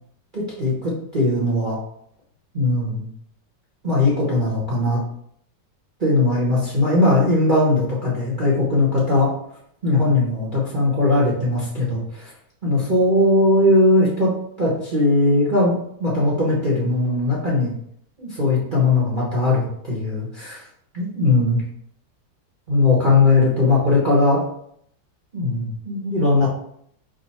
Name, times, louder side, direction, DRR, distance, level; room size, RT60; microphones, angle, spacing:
voice 1, 0.3-1.8 2.5-3.1 3.8-5.0 6.0-9.3 9.8-12.3 12.6-14.3 14.6-17.8 18.2-20.6 20.9-21.6 22.7-24.4 25.3-26.5, left 2 dB, 30° right, -6 dB, 1.1 m, -19 dB
5.2 x 2.4 x 4.2 m, 0.68 s
omnidirectional pair, 2.0 m